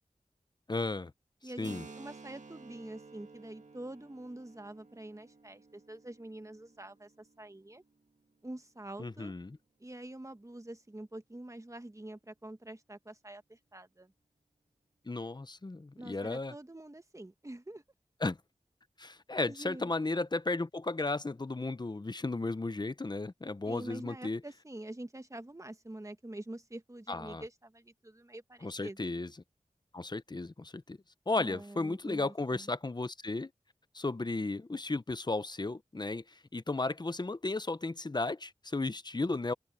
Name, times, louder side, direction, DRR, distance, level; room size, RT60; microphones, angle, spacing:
voice 1, 0.7-1.1 1.6-1.9 9.0-9.6 15.1-16.5 18.2-18.4 19.0-24.4 27.1-27.4 28.6-29.3 29.9-31.0 31.3-33.5 33.9-39.5, left 3 dB, 35° left, 0.8 m, -34 dB
voice 2, 1.4-7.8 8.4-9.3 9.8-14.1 16.0-17.8 19.5-19.9 23.6-29.2 31.3-32.7, right 1 dB, 25° right, 1.6 m, -46 dB
Keyboard (musical), 1.6-9.0, right 4 dB, 75° right, 1.7 m, -54 dB
open air
wide cardioid pair, 55°, 13 cm